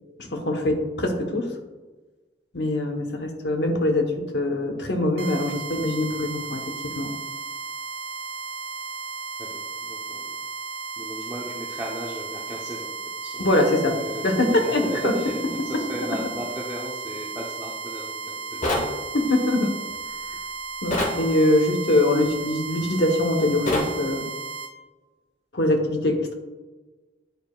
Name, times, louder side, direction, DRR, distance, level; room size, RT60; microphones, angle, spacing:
voice 1, 0.2-1.5 2.5-7.1 13.4-13.9 14.2-15.1 15.9-16.1 19.1-19.7 20.8-24.3 25.5-26.3, left 1 dB, 70° left, 3 dB, 1.0 m, -23 dB
sound 1, 5.2-24.7, right 4 dB, 80° right, 0.8 m, -35 dB
voice 2, 9.4-10.4 11.0-13.0 13.2-13.6 13.8-19.0, equal, 15° right, -4 dB, 0.8 m, -35 dB
sound 2, 18.6-18.9 20.9-21.2 23.7-23.9, left 1 dB, 40° left, 1.0 m, -24 dB
10.5 x 4.7 x 2.3 m, 1.2 s
head